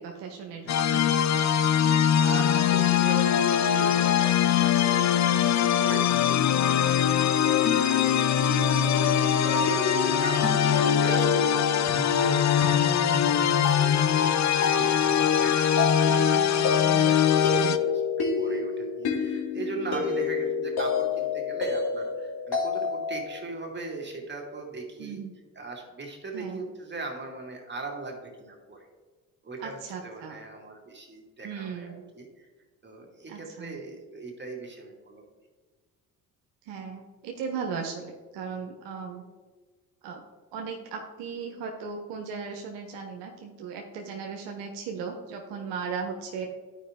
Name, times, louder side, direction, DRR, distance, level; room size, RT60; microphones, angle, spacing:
voice 1, 0.0-1.4 9.6-9.8 16.1-17.2 19.8-20.0 25.0-25.3 26.3-26.6 29.6-30.4 31.4-32.0 33.3-33.7 36.7-39.2 40.0-40.2 40.5-46.5, right 5 dB, 70° right, 2 dB, 1.0 m, -37 dB
sound 1, 0.7-17.8, left 9 dB, 40° left, 0.6 m, -22 dB
voice 2, 2.2-18.0 18.4-25.2 25.6-28.9 29.4-32.5 32.8-35.2, right 3 dB, 25° right, 0 dB, 2.3 m, -39 dB
sound 2, 7.4-23.2, left 5 dB, 60° left, 2.1 m, -30 dB
11.0 x 5.0 x 3.6 m, 1.4 s
hypercardioid pair, 50°, 44 cm